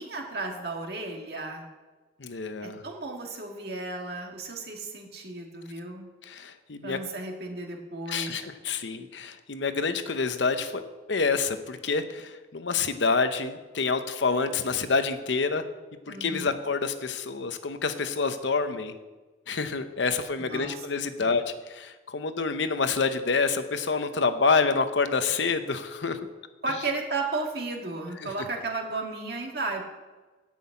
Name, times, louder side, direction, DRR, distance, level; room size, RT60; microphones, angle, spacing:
voice 1, 0.0-1.6 2.6-6.1 6.8-8.5 16.1-16.5 20.4-20.8 21.2-21.3 26.6-29.8, right 3 dB, 55° right, 1 dB, 1.9 m, -34 dB
voice 2, 2.2-2.8 6.2-7.0 8.1-10.8 11.1-15.6 16.1-18.9 19.5-26.2 28.2-28.3, left 4 dB, 80° left, 10 dB, 0.8 m, -27 dB
9.3 x 6.2 x 8.6 m, 1.2 s
head